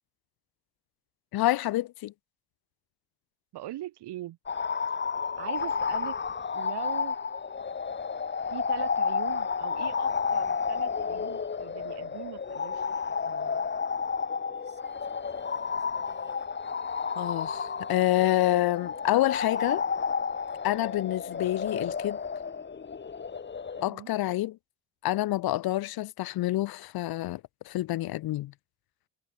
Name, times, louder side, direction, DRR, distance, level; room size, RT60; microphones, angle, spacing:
voice 1, 1.3-2.1 17.2-19.8 20.6-22.2 23.8-24.6 25.0-27.4 27.7-28.5, left 16 dB, 65° left, 0.7 m, -27 dB
voice 2, 3.5-4.4 5.3-6.2 6.5-7.2 8.5-13.6 23.8-24.1, right 14 dB, 75° right, 3.7 m, -41 dB
sound 1, 4.5-23.8, left 5 dB, 25° left, 1.1 m, -31 dB
Female singing, 14.5-16.8 17.1-19.1 19.7-19.9, right 3 dB, 25° right, 5.0 m, -57 dB
supercardioid pair, 65°, 40 cm